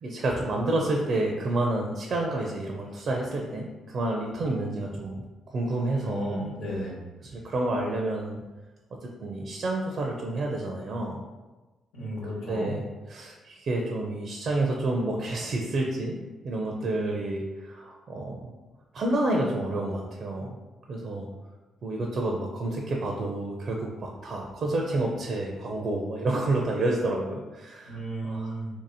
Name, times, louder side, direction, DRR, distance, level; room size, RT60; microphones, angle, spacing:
voice 1, 0.0-6.4 7.3-8.4 9.0-11.2 12.5-16.2 16.4-18.5 18.9-20.6 20.9-21.3 21.8-28.0 28.2-28.5, right 2 dB, 55° right, 0 dB, 0.5 m, -29 dB
voice 2, 5.9-7.0 11.9-12.7 27.9-28.8, equal, 85° left, -5 dB, 1.2 m, -34 dB
2.9 x 2.8 x 4.0 m, 1.2 s
cardioid pair, 90°, 0 cm